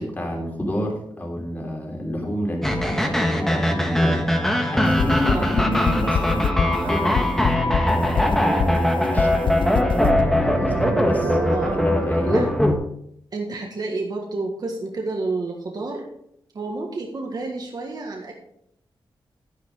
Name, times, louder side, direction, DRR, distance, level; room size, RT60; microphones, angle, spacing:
voice 1, 0.0-4.2 4.7-7.3 7.9-12.5, equal, 20° left, -1 dB, 3.4 m, -29 dB
sound 1, 2.6-12.7, left 1 dB, 5° left, 1.5 m, -21 dB
sound 2, 4.9-10.2, left 7 dB, 70° left, 0.5 m, -23 dB
voice 2, 5.3-5.9 11.5-11.8 12.3-12.5 13.3-16.1 16.5-18.3, right 3 dB, 50° right, 1 dB, 1.8 m, -30 dB
sound 3, 6.0-12.4, right 5 dB, 65° right, 0.8 m, -32 dB
11.0 x 10.5 x 3.8 m, 0.72 s
wide cardioid pair, 110°, 9 cm